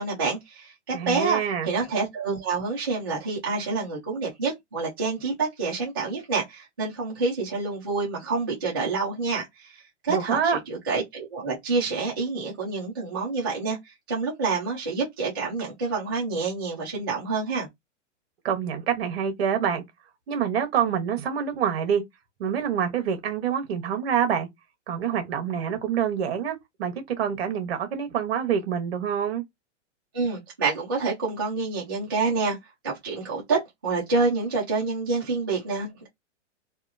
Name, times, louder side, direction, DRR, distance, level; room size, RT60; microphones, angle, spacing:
voice 1, 0.0-17.7 30.1-32.6 32.8-36.1, right 4 dB, 20° right, 0.3 m, -28 dB
voice 2, 0.9-1.7 10.1-10.6 18.4-19.8 20.3-22.0 22.4-24.5 24.9-29.4, right 8 dB, 55° right, 1.0 m, -26 dB
2.8 x 2.3 x 2.5 m
supercardioid pair, 175°, 37 cm